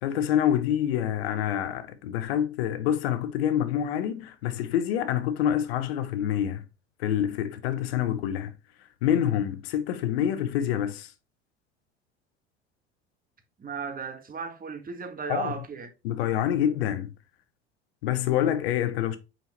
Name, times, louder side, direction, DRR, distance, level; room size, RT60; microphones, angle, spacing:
voice 1, 0.0-6.6 7.0-8.5 9.0-11.1 15.3-15.5 16.0-17.1 18.0-19.2, left 10 dB, 70° left, 0.9 m, -26 dB
voice 2, 13.6-15.9, right 5 dB, 25° right, 1.6 m, -35 dB
5.7 x 5.5 x 3.0 m
hypercardioid pair, 70°, 32 cm